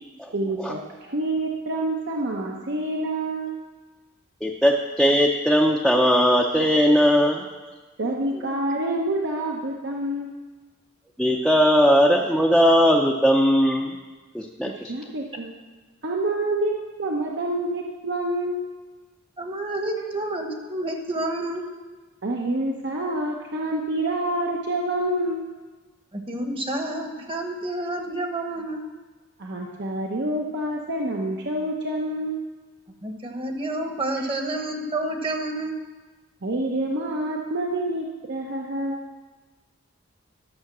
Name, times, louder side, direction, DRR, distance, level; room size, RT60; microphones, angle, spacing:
voice 1, 0.3-3.6 8.0-10.3 14.6-15.5 16.0-16.7 17.0-18.7 22.2-25.4 29.4-32.4 36.4-39.0, right 1 dB, 60° right, 0 dB, 0.9 m, -27 dB
voice 2, 4.4-7.4 11.2-13.9 14.3-14.9, equal, ahead, -1 dB, 0.6 m, -19 dB
voice 3, 19.4-21.6 26.1-28.9 33.0-35.7, right 1 dB, 25° right, 4 dB, 1.1 m, -29 dB
12.0 x 6.8 x 6.1 m, 1.3 s
head